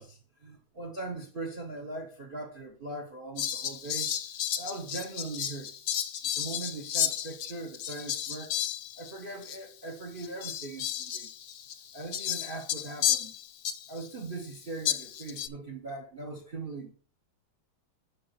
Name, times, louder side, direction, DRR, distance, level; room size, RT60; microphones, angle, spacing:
voice 1, 0.0-4.1 4.6-5.7 6.4-8.5 9.0-11.3 11.9-13.3 13.9-16.9, right 3 dB, 35° right, 1.0 m, -40 dB
Fowl, 3.4-9.2 9.4-9.6 10.2-14.1 14.9-15.5, left 10 dB, 60° left, 1.1 m, -33 dB
11.0 x 3.7 x 5.6 m
omnidirectional pair, 2.2 m